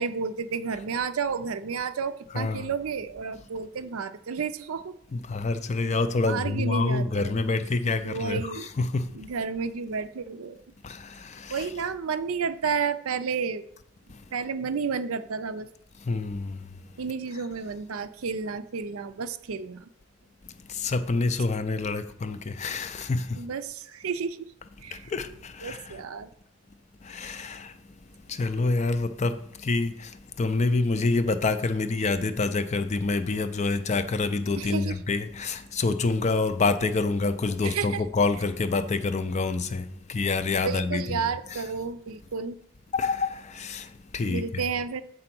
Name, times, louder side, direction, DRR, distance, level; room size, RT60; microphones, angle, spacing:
voice 1, 0.0-4.9 6.2-7.4 8.0-8.7 9.1-10.6 11.5-13.6 14.3-15.7 17.0-19.9 23.3-24.5 24.8-25.1 25.6-26.3 34.6-35.0 37.6-38.0 40.5-42.6 44.3-45.0, right 5 dB, 70° right, 0.5 m, -31 dB
voice 2, 2.3-2.7 5.1-9.2 10.8-11.6 14.1-14.2 16.0-16.7 20.7-23.4 24.9-25.9 27.0-27.7 28.3-41.3 42.9-44.6, left 3 dB, 30° left, 0.4 m, -27 dB
7.9 x 3.8 x 5.9 m
head